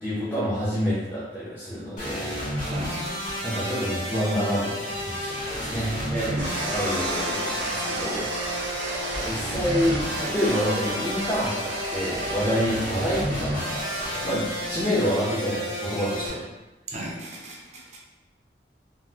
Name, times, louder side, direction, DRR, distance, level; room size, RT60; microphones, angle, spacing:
voice 1, 0.0-2.4 2.7-2.9 3.4-6.0 6.7-13.8 14.2-16.5, equal, 10° left, -12 dB, 0.6 m, -28 dB
sound 1, 2.0-16.3, equal, 45° left, 1.3 m, -31 dB
voice 2, 2.7-3.0 6.1-6.7 16.9-18.0, right 2 dB, 40° right, -2 dB, 0.6 m, -34 dB
sound 2, 6.4-15.1, right 2 dB, 85° right, 0.6 m, -34 dB
3.9 x 2.1 x 2.7 m, 1.1 s
head